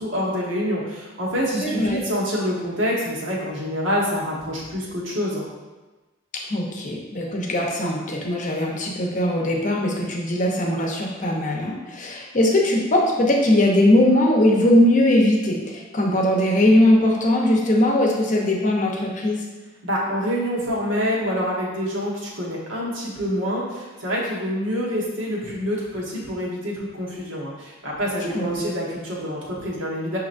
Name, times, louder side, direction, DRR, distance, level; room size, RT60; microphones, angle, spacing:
voice 1, 0.0-5.5 19.8-30.2, equal, 75° right, -4 dB, 1.1 m, -26 dB
voice 2, 1.6-2.0 6.5-19.4 28.3-28.7, left 1 dB, 40° left, -1 dB, 0.7 m, -20 dB
6.2 x 2.8 x 2.5 m, 1.2 s
head